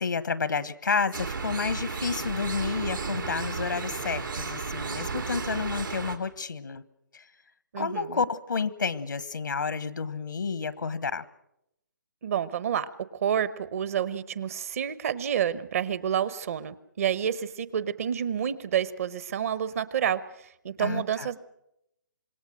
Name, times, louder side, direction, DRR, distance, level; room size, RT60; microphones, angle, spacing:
voice 1, 0.0-6.8 7.1-7.2 7.8-11.2 20.8-21.3, left 5 dB, 85° left, 16 dB, 1.3 m, -30 dB
sound 1, 1.1-6.2, right 5 dB, 90° right, 3.4 m, -33 dB
voice 2, 7.7-8.3 12.2-21.4, right 9 dB, 50° right, 16 dB, 1.0 m, -29 dB
26.5 x 21.0 x 6.4 m, 0.81 s
hypercardioid pair, 155°, 10 cm